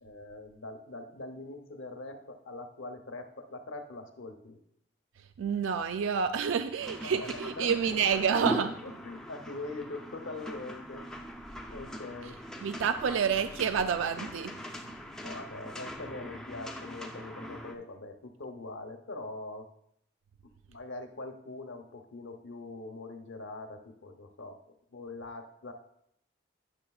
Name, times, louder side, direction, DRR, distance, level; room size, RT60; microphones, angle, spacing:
voice 1, 0.0-4.6 7.0-8.0 8.8-11.2 11.7-12.4 15.2-19.7 20.7-25.7, left 2 dB, 75° left, 6 dB, 0.8 m, -43 dB
voice 2, 5.2-8.8 12.6-14.6, right 6 dB, 75° right, 9 dB, 0.3 m, -29 dB
sound 1, 6.8-17.7, equal, 5° left, 0.4 m, -41 dB
9.8 x 6.4 x 2.3 m, 0.73 s
head